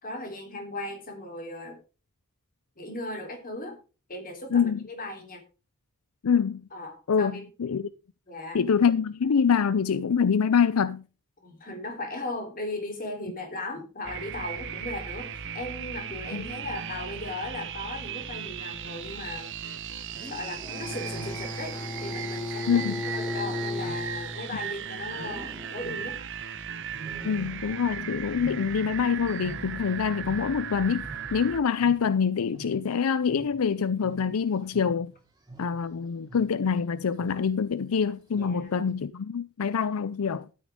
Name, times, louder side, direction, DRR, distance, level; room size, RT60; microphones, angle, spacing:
voice 1, 0.0-1.8 2.8-3.8 4.1-5.4 6.7-7.4 8.3-8.6 11.4-19.5 20.3-26.2 38.4-38.7, left 2 dB, 40° left, 3.8 m, -37 dB
voice 2, 6.2-6.7 7.1-7.9 8.5-11.0 16.3-16.4 22.7-23.0 27.2-35.1 35.6-40.5, left 6 dB, 85° left, 0.5 m, -25 dB
sound 1, 14.0-31.6, right 7 dB, 60° right, 1.2 m, -37 dB
Wild animals, 20.1-21.7 22.8-24.7 25.1-26.3 26.9-28.0 28.2-30.7 31.0-35.9 36.3-36.7 37.2-37.6 38.3-38.8, right 2 dB, 15° right, 3.1 m, -46 dB
Bowed string instrument, 20.6-24.7, left 2 dB, 20° left, 0.9 m, -35 dB
12.5 x 9.5 x 3.7 m
head